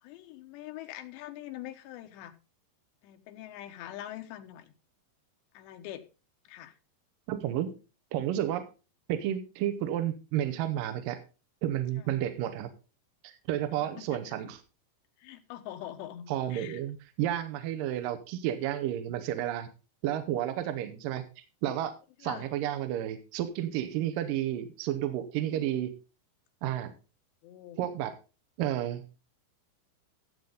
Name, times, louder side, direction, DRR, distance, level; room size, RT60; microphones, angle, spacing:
voice 1, 0.0-2.3 3.0-4.7 5.5-6.0 6.4-6.7 12.0-12.1 14.0-14.2 15.2-16.8 22.2-22.5 26.8-26.9 27.4-27.8, left 12 dB, 85° left, 7 dB, 3.3 m, -43 dB
voice 2, 7.3-7.7 8.1-8.7 9.1-11.2 11.6-12.7 13.2-14.6 16.3-19.7 20.0-21.2 21.6-21.9 22.2-25.9 26.6-26.9 27.8-28.1 28.6-29.0, right 11 dB, 75° right, 11 dB, 2.1 m, -31 dB
13.5 x 8.1 x 3.9 m, 0.31 s
omnidirectional pair, 4.9 m